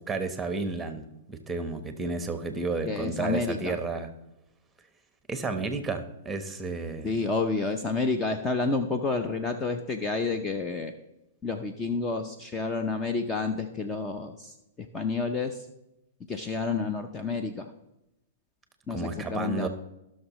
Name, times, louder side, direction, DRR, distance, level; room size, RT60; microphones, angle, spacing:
voice 1, 0.0-4.1 5.3-7.1 18.9-19.7, right 3 dB, 10° right, 8 dB, 1.1 m, -32 dB
voice 2, 2.9-3.8 7.0-10.9 11.4-15.6 16.3-17.7 18.9-19.7, left 3 dB, 20° left, 7 dB, 0.7 m, -30 dB
16.5 x 6.4 x 3.1 m, 0.91 s
hypercardioid pair, 130°, 0 cm